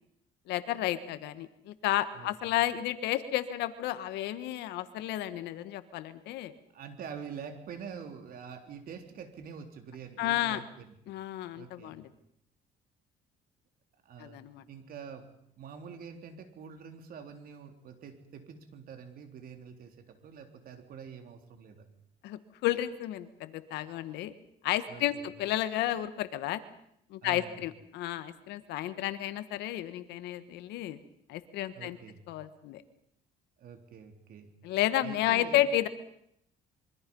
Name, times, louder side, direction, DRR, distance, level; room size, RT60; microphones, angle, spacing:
voice 1, 0.5-6.5 10.2-10.6 11.1-12.1 14.2-14.6 22.2-24.3 24.6-26.6 27.1-31.0 31.3-32.0 32.3-32.8 34.6-35.9, left 13 dB, 85° left, 12 dB, 1.6 m, -32 dB
voice 2, 6.7-10.9 11.6-12.0 14.1-14.4 14.7-15.3 15.6-21.9 24.9-25.3 27.2-27.6 31.7-32.2 33.6-34.5 35.0-35.6, right 7 dB, 60° right, 6 dB, 3.6 m, -46 dB
25.5 x 24.0 x 5.6 m, 0.73 s
cardioid pair, 110°, 17 cm